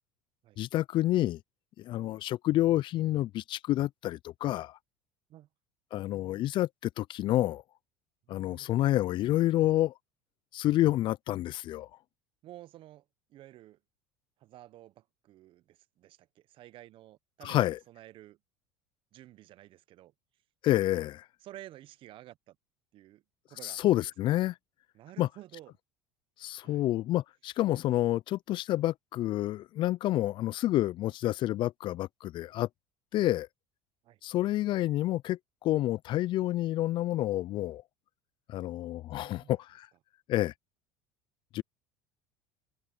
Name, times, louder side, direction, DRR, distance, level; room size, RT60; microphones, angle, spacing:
voice 1, 0.6-1.4 1.8-4.8 5.9-6.7 7.0-7.6 8.3-9.9 10.5-11.9 17.4-17.8 20.6-21.2 23.6-24.5 25.2-25.3 26.4-32.7 33.1-33.5 34.2-37.8 38.5-39.9 40.3-40.5 41.5-41.6, left 15 dB, 45° left, 0.4 m, -28 dB
voice 2, 8.3-8.7 12.4-13.0 13.3-13.8 14.4-18.4 19.1-20.1 21.4-22.6 22.9-23.2 23.5-23.8 24.9-25.7 26.6-26.8 34.0-34.2 39.2-39.5, right 14 dB, 50° right, 0.8 m, -52 dB
hypercardioid pair, 90°, 11 cm